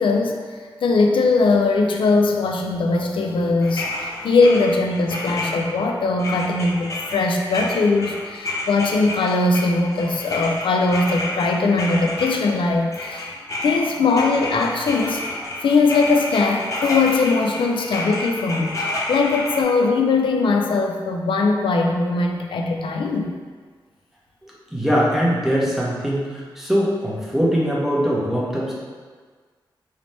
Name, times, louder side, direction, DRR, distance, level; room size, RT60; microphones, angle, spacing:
voice 1, 0.0-18.8 19.1-23.3, left 3 dB, 90° left, 3 dB, 0.4 m, -20 dB
sound 1, 3.6-5.9 6.2-12.6 12.9-19.6, left 2 dB, 40° left, 0.6 m, -30 dB
voice 2, 24.4-28.7, equal, 5° right, -6 dB, 0.7 m, -22 dB
3.2 x 2.8 x 4.1 m, 1.5 s
wide cardioid pair, 175°, 8 cm